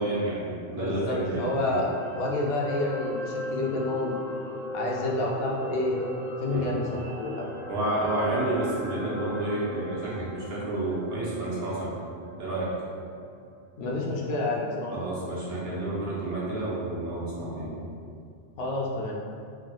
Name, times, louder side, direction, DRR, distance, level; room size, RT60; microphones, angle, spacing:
voice 1, 0.0-1.8 6.5-6.7 7.7-11.9 12.4-12.8 14.9-17.8, right 1 dB, 70° right, -7 dB, 1.0 m, -30 dB
voice 2, 0.7-1.9 2.2-4.2 4.7-6.1 6.4-7.5 13.8-15.1 18.6-19.2, left 2 dB, 65° left, -3 dB, 0.7 m, -29 dB
sound 1, 1.1-13.4 13.8-13.9, equal, 45° right, 0.7 m, -38 dB
3.3 x 2.6 x 2.3 m, 2.2 s
omnidirectional pair, 1.1 m